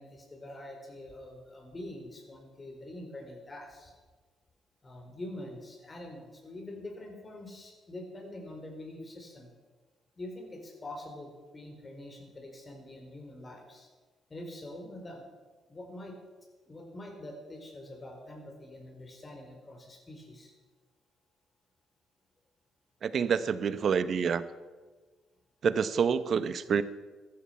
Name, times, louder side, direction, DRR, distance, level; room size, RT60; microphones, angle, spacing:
voice 1, 0.0-3.9 4.8-9.5 10.2-13.9 14.3-15.3 15.7-16.2 16.7-20.5, left 1 dB, 30° left, 3 dB, 4.3 m, -45 dB
voice 2, 23.0-24.4 25.6-26.8, right 6 dB, 55° right, 14 dB, 0.8 m, -27 dB
15.0 x 12.5 x 5.8 m, 1.3 s
cardioid pair, 90°, 0 cm